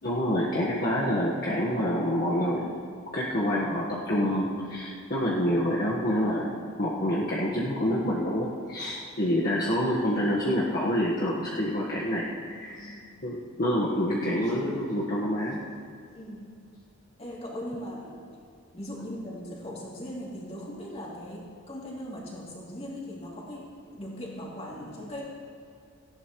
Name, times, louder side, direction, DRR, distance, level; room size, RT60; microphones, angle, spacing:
voice 1, 0.0-2.8 3.1-13.0 13.2-15.6, equal, 45° left, -5 dB, 1.4 m, -27 dB
voice 2, 12.7-13.1 16.1-16.6 17.2-18.2 18.7-25.2, equal, 30° left, -4 dB, 2.9 m, -39 dB
18.0 x 15.0 x 3.1 m, 2.3 s
head